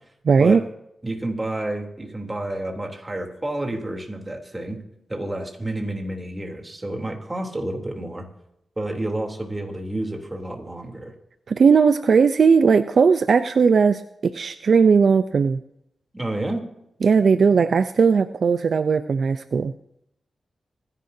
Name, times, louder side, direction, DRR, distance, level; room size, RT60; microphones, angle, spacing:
voice 1, 0.3-0.6 11.5-15.6 17.0-19.7, right 5 dB, 65° right, 11 dB, 0.6 m, -18 dB
voice 2, 1.0-4.8 5.1-8.3 8.8-11.1 16.1-16.6, right 1 dB, 20° right, 2 dB, 3.3 m, -29 dB
25.5 x 11.0 x 2.8 m, 0.79 s
cardioid pair, 80°, 0 cm